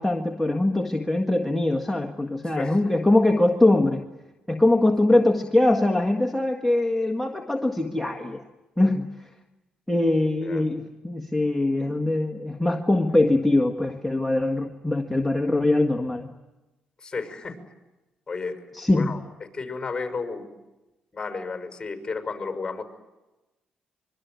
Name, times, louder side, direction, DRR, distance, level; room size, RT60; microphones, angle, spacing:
voice 1, 0.0-4.0 4.5-8.4 8.8-9.3 9.9-16.3 18.7-19.1, left 2 dB, 5° left, 2 dB, 1.8 m, -22 dB
voice 2, 17.0-17.6 18.3-18.7 18.9-19.2 19.5-20.5 21.1-22.8, left 4 dB, 20° left, 7 dB, 6.1 m, -32 dB
25.5 x 24.0 x 9.5 m, 1.0 s
cardioid pair, 105°, 3 cm